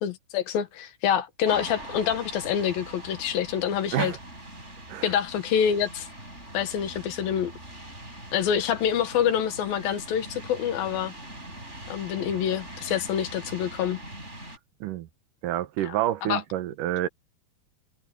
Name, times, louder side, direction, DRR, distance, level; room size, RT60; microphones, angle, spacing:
voice 1, 0.0-4.1 5.0-6.1 6.5-7.5 8.3-11.1 11.9-14.0 15.9-16.0 16.2-16.4, left 9 dB, 80° left, 3.3 m, -26 dB
sound 1, 1.4-14.6, right 1 dB, 15° right, 8.2 m, -42 dB
voice 2, 15.4-17.1, right 13 dB, 70° right, 2.4 m, -28 dB
omnidirectional pair, 4.2 m